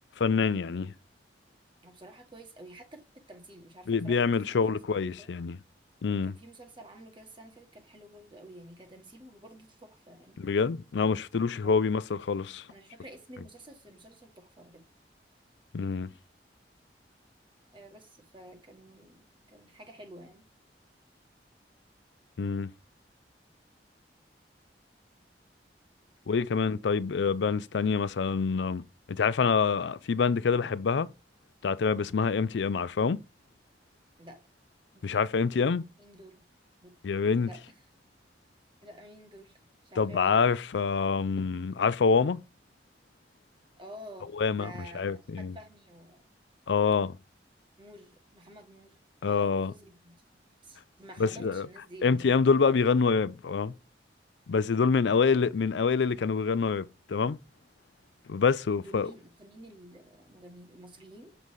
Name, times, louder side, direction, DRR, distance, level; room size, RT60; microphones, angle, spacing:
voice 1, 0.2-0.9 3.9-5.6 6.0-6.4 10.4-12.7 15.7-16.1 22.4-22.7 26.3-31.1 31.6-33.2 35.0-35.8 37.0-37.5 40.0-42.4 44.4-45.6 46.7-47.2 49.2-49.7 51.2-51.7 52.0-53.7 54.5-57.4 58.3-59.1, left 5 dB, 85° left, 0.4 m, -26 dB
voice 2, 1.8-4.2 4.5-4.6 5.0-5.3 6.2-10.4 11.6-12.0 12.7-14.8 17.7-20.4 34.2-34.4 34.9-35.0 36.0-36.4 36.8-36.9 37.4-37.6 38.8-40.5 43.8-44.3 44.6-46.2 47.8-49.0 49.2-50.2 50.6-52.5 58.7-61.4, right 1 dB, 30° right, 1.7 m, -50 dB
7.3 x 4.0 x 4.7 m
head